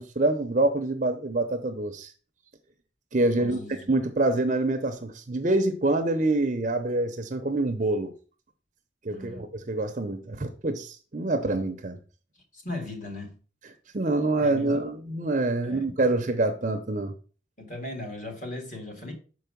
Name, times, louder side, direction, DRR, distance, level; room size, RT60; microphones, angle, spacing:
voice 1, 0.0-2.1 3.1-3.6 3.9-8.1 9.0-12.0 13.9-17.1, right 2 dB, 40° right, 0.6 m, -26 dB
voice 2, 3.3-3.9 9.1-9.5 12.5-13.4 14.4-14.9 15.6-15.9 17.6-19.1, left 2 dB, 40° left, 1.9 m, -37 dB
6.4 x 4.6 x 5.2 m
head